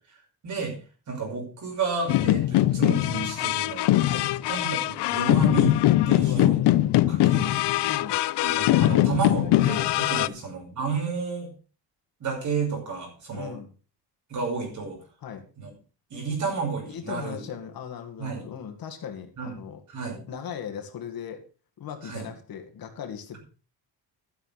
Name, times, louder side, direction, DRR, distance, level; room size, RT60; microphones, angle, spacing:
voice 1, 0.4-0.8 1.1-5.8 6.0-6.6 7.1-7.6 8.4-11.5 12.2-13.6 14.3-15.0 15.6-15.7 16.1-17.4 18.2-18.4 19.4-19.6 19.9-20.2 22.0-22.3, right 5 dB, 45° right, 1 dB, 5.8 m, -31 dB
sound 1, 2.1-10.3, left 15 dB, 75° left, 0.6 m, -22 dB
voice 2, 6.2-6.8 7.9-8.2 10.1-10.4 13.3-13.7 15.2-15.5 16.9-19.8 20.3-21.4 21.8-23.4, left 8 dB, 55° left, 4 dB, 1.9 m, -38 dB
12.5 x 6.8 x 5.7 m, 0.36 s
cardioid pair, 160°, 41 cm